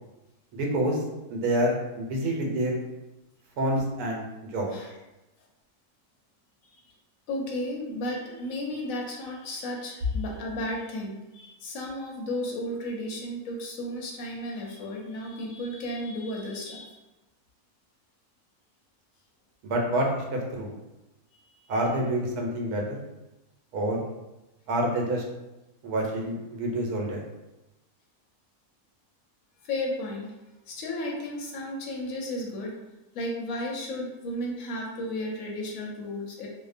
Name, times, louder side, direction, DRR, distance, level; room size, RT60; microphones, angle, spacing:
voice 1, 0.6-1.0 1.3-2.8 3.6-4.2 4.5-4.7 19.6-20.7 21.7-23.0 23.7-24.0 24.7-25.2 25.8-27.2, right 1 dB, 80° right, 0 dB, 1.1 m, -27 dB
voice 2, 7.3-16.9 29.6-30.3 30.7-32.7 33.1-36.5, left 1 dB, 70° left, 0 dB, 0.9 m, -33 dB
2.7 x 2.0 x 2.4 m, 1.0 s
omnidirectional pair, 1.6 m